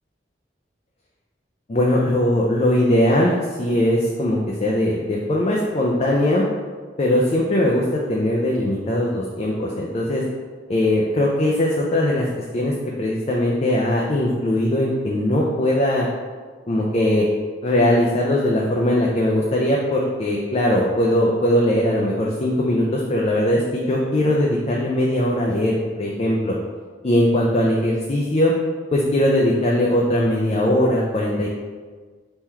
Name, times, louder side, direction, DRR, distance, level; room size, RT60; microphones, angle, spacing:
voice 1, 1.7-6.4 7.0-10.2 10.7-12.2 12.5-16.1 16.7-17.3 17.6-26.6 27.0-28.5 28.9-31.5, left 1 dB, 35° left, -3 dB, 0.4 m, -20 dB
3.7 x 3.0 x 4.3 m, 1.5 s
head